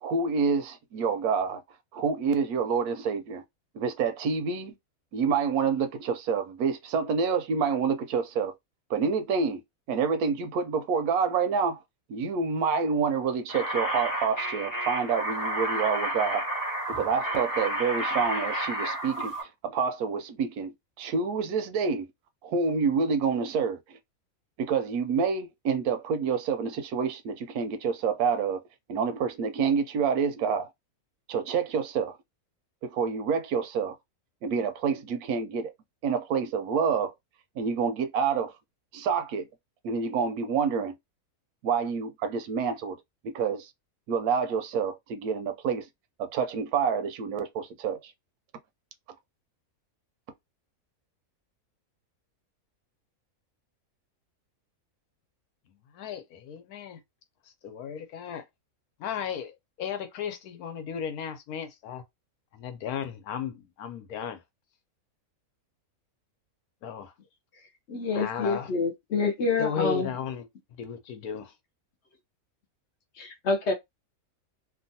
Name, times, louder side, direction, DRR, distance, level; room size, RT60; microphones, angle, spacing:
voice 1, 0.0-1.6 1.9-3.4 3.7-4.7 5.1-8.5 8.9-9.6 9.9-11.8 12.1-16.5 16.9-20.7 21.0-22.1 22.4-24.0 24.6-28.6 28.9-30.7 31.3-32.1 32.9-33.9 34.4-35.7 36.0-37.1 37.6-38.5 38.9-39.5 39.8-40.9 41.6-43.0 43.2-43.7 44.1-45.8 46.2-48.0, right 5 dB, 80° right, 1.1 m, -27 dB
sound 1, 13.5-19.4, right 1 dB, 25° left, 0.5 m, -31 dB
voice 2, 55.9-57.0 57.6-58.4 59.0-62.0 62.5-64.4 66.8-67.1 68.1-68.7 69.6-70.5 70.8-71.5, left 7 dB, 85° left, 1.2 m, -35 dB
voice 3, 67.9-70.1 73.2-73.7, left 4 dB, 60° left, 0.8 m, -27 dB
2.9 x 2.3 x 2.7 m
omnidirectional pair, 1.6 m